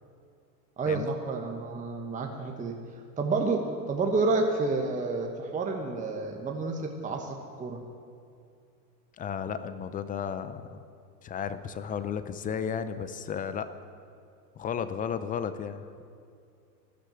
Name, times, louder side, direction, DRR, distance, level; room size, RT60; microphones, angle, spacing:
voice 1, 0.8-2.8 3.2-7.8, right 3 dB, 15° right, 2 dB, 1.2 m, -29 dB
voice 2, 9.2-10.8 11.2-13.7 14.6-15.9, left 7 dB, 20° left, 12 dB, 0.4 m, -33 dB
13.5 x 10.5 x 7.5 m, 2.4 s
hypercardioid pair, 105°, 50 cm